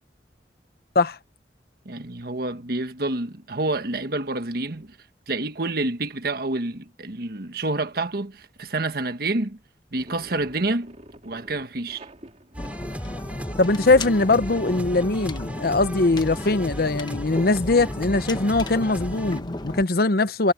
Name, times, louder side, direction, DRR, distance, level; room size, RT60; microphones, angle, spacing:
voice 1, 1.8-4.9 5.3-9.6 9.9-11.0 11.2-12.0, right 2 dB, 55° right, 1.4 m, -28 dB
sound 1, 9.9-15.1, right 1 dB, 40° right, 2.5 m, -48 dB
sound 2, 12.5-19.4, equal, 10° right, 2.6 m, -37 dB
sound 3, 12.6-19.8, left 1 dB, 25° left, 1.0 m, -34 dB
voice 2, 13.6-20.5, left 3 dB, 55° left, 0.8 m, -21 dB
head